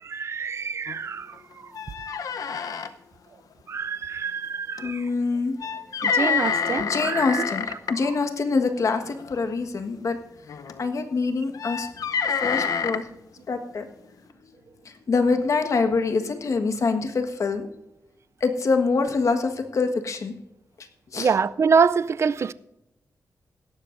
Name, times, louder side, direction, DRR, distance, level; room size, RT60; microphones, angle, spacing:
voice 1, 0.0-1.7 3.7-5.1 6.0-7.4 8.0-8.1 21.1-22.5, right 5 dB, 50° right, 0.4 m, -25 dB
sound 1, 0.9-1.0 1.3-1.4 1.7-2.9 4.8-4.9 5.6-7.9 9.0-9.3 10.5-10.8 11.5-13.0, left 6 dB, 80° left, 0.8 m, -27 dB
voice 2, 4.8-5.5 6.8-10.2 10.8-11.9 12.4-13.1 13.5-13.9 14.8-17.7 18.4-20.3 20.8-20.9 21.1-21.3, left 4 dB, 60° left, 1.4 m, -25 dB
17.0 x 12.5 x 2.6 m
wide cardioid pair, 115°, 6 cm